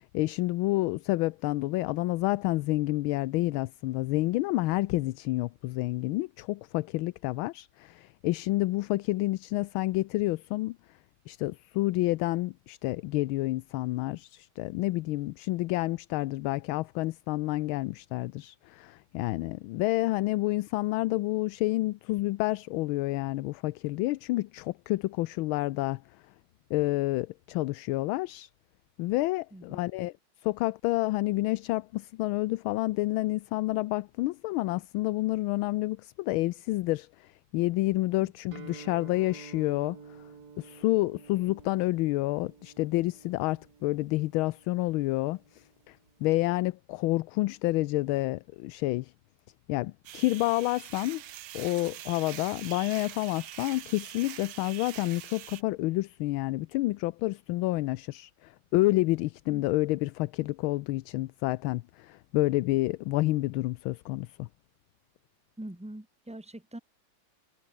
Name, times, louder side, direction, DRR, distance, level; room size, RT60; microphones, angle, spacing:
voice 1, 0.0-10.8 11.3-26.0 26.7-28.5 29.0-30.1 30.4-40.0 40.6-49.1 49.7-51.2 51.5-64.5, left 18 dB, 80° left, 1.4 m, -29 dB
Guitar, 38.5-46.3, right 5 dB, 50° right, 2.7 m, -50 dB
sound 1, 50.0-55.6, right 13 dB, 75° right, 1.7 m, -44 dB
voice 2, 65.6-66.8, right 1 dB, 5° right, 1.9 m, -43 dB
omnidirectional pair, 2.3 m